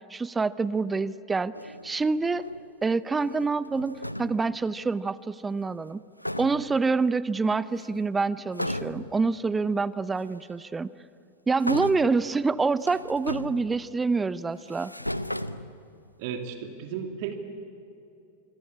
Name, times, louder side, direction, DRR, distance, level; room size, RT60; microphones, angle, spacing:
voice 1, 0.1-2.5 2.8-6.0 6.4-10.9 11.5-14.9, right 4 dB, 15° right, 18 dB, 0.6 m, -26 dB
sound 1, 1.5-2.7 3.1-4.5 5.9-6.0 6.2-6.9 7.7-8.2 8.5-9.3 10.2-10.3 11.6-12.3 12.7-14.1 14.5-16.1, left 1 dB, 90° left, 0.8 m, -36 dB
voice 2, 16.2-17.4, right 8 dB, 50° right, 5 dB, 2.4 m, -34 dB
26.5 x 24.0 x 8.6 m, 2.7 s
figure-of-eight pair, 90°, 0 cm